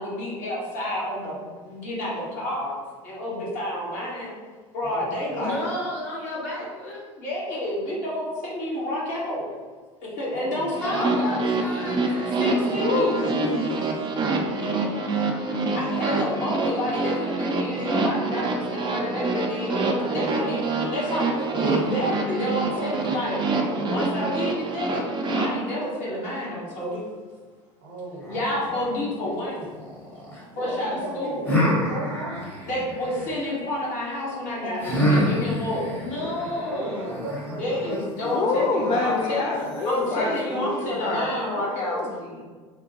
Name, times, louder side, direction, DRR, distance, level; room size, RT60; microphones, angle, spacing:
voice 1, 0.0-2.7 3.0-4.4 4.7-5.6 7.2-9.4 10.0-11.2 12.4-13.3 15.7-20.6 20.9-21.3 21.6-23.4 23.8-25.1 25.3-27.0 28.3-29.7 30.6-31.5 32.6-35.9 37.6-39.5 39.8-42.0, left 1 dB, 50° left, -6 dB, 1.3 m, -29 dB
voice 2, 4.8-5.6 10.3-11.5 13.3-13.7 13.9-14.2 14.5-15.5 18.6-19.3 20.0-21.7 22.7-24.0 27.8-28.5 30.5-32.4 34.6-35.5 36.2-38.0 38.6-39.2 40.2-41.3, right 1 dB, 55° right, -2 dB, 0.8 m, -36 dB
voice 3, 5.3-7.0 10.8-12.7 14.6-15.9 30.6-31.3 36.0-37.4, left 1 dB, 70° left, -8 dB, 1.4 m, -33 dB
sound 1, 10.7-25.5, right 3 dB, 30° right, 0.5 m, -26 dB
voice 4, 12.7-13.8 38.3-42.4, left 3 dB, 30° left, -1 dB, 0.4 m, -27 dB
sound 2, 28.2-30.4 31.5-33.5 34.8-40.4, left 1 dB, 10° left, 0.9 m, -28 dB
3.2 x 2.2 x 2.9 m, 1.4 s
figure-of-eight pair, 70°, 16 cm